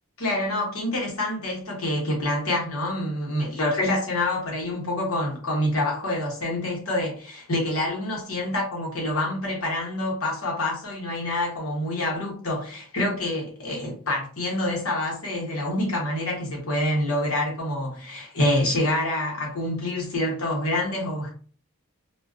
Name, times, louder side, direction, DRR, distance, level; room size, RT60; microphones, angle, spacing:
voice 1, 0.2-21.3, left 1 dB, 80° left, 1.1 m, -27 dB
2.3 x 2.2 x 2.4 m
head